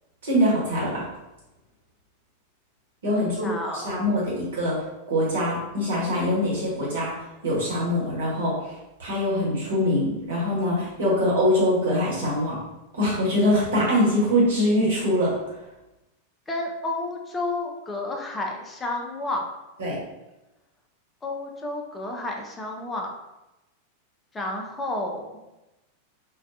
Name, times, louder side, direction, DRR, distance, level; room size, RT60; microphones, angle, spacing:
voice 1, 0.2-1.0 3.0-4.7 5.1-7.1 7.4-8.5 9.0-12.6 12.9-15.3 19.8-20.0, left 1 dB, 60° right, -6 dB, 1.0 m, -23 dB
voice 2, 3.2-4.0 16.5-19.5 21.2-23.1 24.3-25.3, left 2 dB, 15° left, 1 dB, 0.4 m, -31 dB
2.4 x 2.2 x 2.5 m, 1.0 s
figure-of-eight pair, 90°, 0 cm